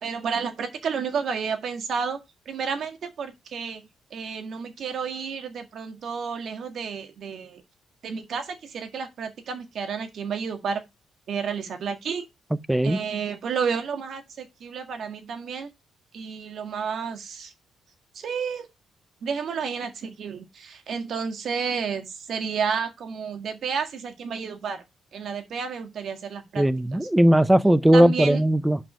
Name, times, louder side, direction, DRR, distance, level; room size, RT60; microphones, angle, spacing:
voice 1, 0.0-2.2 2.4-3.8 4.1-7.6 8.0-10.8 11.3-12.2 12.8-15.7 16.1-17.5 18.1-18.7 19.2-24.8 25.1-26.6 26.9-27.0 27.9-28.4, right 6 dB, 60° right, 1.7 m, -31 dB
voice 2, 12.7-13.0 26.6-28.8, right 1 dB, 10° right, 0.6 m, -18 dB
5.5 x 5.1 x 6.2 m
cardioid pair, 90°, 0 cm